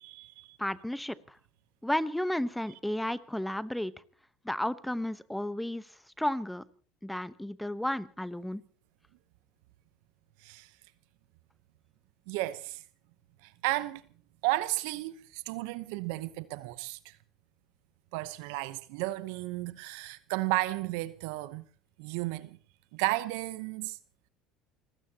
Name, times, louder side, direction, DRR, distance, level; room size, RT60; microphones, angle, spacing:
voice 1, 0.0-0.6 10.4-10.7 12.3-12.8 13.4-14.1 14.4-17.2 18.1-21.6 22.0-22.6 22.9-24.0, right 19 dB, 75° right, 0.9 m, -33 dB
voice 2, 0.6-1.4 1.8-3.9 4.4-5.9 6.2-6.6 7.0-8.6, left 1 dB, 5° left, 1.0 m, -32 dB
30.0 x 15.5 x 2.9 m
hypercardioid pair, 80°, 0 cm